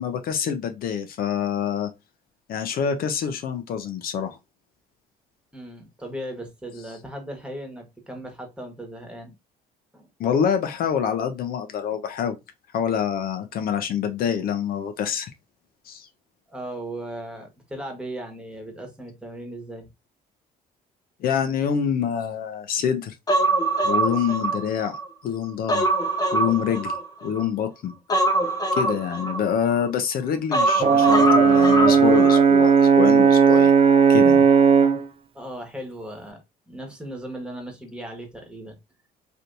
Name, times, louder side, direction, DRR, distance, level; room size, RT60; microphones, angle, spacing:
voice 1, 0.0-1.9 2.5-4.4 10.2-12.4 12.7-15.3 15.9-16.1 21.2-23.1 23.8-25.9 26.3-26.9 27.2-27.9 28.7-33.7 34.1-34.5, left 8 dB, 60° left, 0.6 m, -26 dB
voice 2, 5.5-9.3 9.9-10.1 16.5-19.9 35.3-36.4 36.7-38.8, right 1 dB, 5° right, 1.2 m, -37 dB
Human voice, 23.3-25.1 25.4-27.4 28.1-29.9 30.5-32.4 32.7-32.8, right 1 dB, 20° left, 0.7 m, -23 dB
Brass instrument, 30.8-35.0, right 6 dB, 35° right, 0.4 m, -16 dB
3.3 x 2.8 x 2.6 m
cardioid pair, 110°, 17 cm